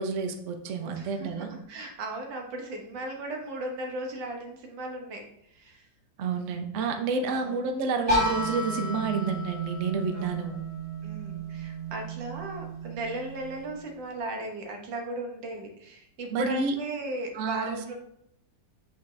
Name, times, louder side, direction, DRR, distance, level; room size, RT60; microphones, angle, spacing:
voice 1, 0.0-1.5 6.2-10.6 16.3-16.7 17.3-17.8, right 4 dB, 60° right, 5 dB, 0.8 m, -29 dB
voice 2, 0.8-5.9 7.3-7.6 10.1-10.6 11.0-17.9, right 2 dB, 80° right, 2 dB, 1.8 m, -37 dB
sound 1, 8.1-13.9, right 1 dB, 30° right, 1.9 m, -32 dB
8.2 x 4.2 x 3.2 m, 0.75 s
omnidirectional pair, 2.0 m